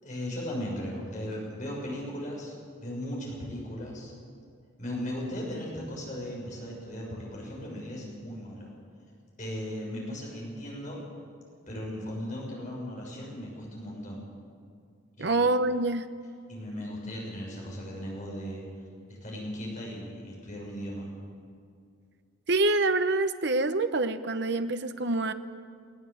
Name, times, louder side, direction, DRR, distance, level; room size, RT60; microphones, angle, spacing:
voice 1, 0.0-4.1 4.8-8.7 9.4-11.0 11.7-14.2 15.2-15.4 16.5-18.6 19.1-21.1, equal, 40° left, -3 dB, 6.3 m, -37 dB
voice 2, 15.2-16.0 22.5-25.3, right 2 dB, 55° right, 9 dB, 0.9 m, -26 dB
19.5 x 18.0 x 7.7 m, 2.3 s
head